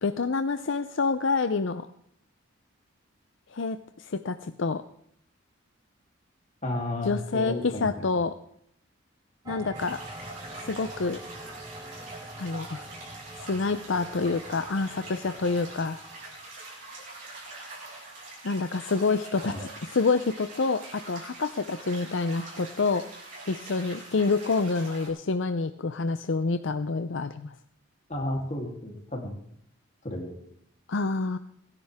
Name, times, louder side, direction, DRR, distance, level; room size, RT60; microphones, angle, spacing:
voice 1, 0.0-1.9 3.5-4.8 7.0-8.3 9.5-10.0 10.6-11.2 12.4-12.9 13.4-16.0 18.4-19.5 19.9-23.0 23.5-27.5 30.9-31.4, left 4 dB, 65° left, 10 dB, 0.6 m, -27 dB
voice 2, 6.6-7.9 19.4-19.6 28.1-29.4 30.0-30.3, left 1 dB, 35° left, 0 dB, 3.1 m, -32 dB
sound 1, 9.5-16.5, right 1 dB, 15° right, 0.7 m, -45 dB
sound 2, 9.7-25.1, right 2 dB, 40° right, 7.0 m, -44 dB
25.5 x 11.0 x 3.6 m, 0.71 s
head